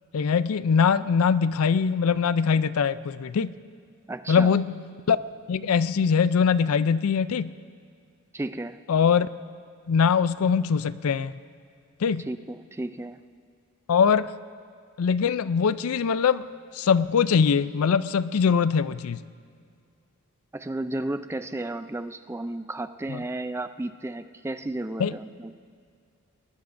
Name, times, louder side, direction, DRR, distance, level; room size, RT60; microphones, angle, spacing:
voice 1, 0.1-3.5 4.3-4.7 5.1-5.2 5.5-7.5 8.9-9.3 9.9-11.3 12.0-12.3 13.9-14.3 15.0-16.4 16.7-19.2 23.1-23.2 25.0-25.1, left 6 dB, 80° left, 16 dB, 0.4 m, -22 dB
voice 2, 4.1-4.6 8.3-8.8 12.3-13.2 20.5-25.5, right 2 dB, 10° right, 11 dB, 0.3 m, -33 dB
21.5 x 20.5 x 2.6 m, 2.3 s
head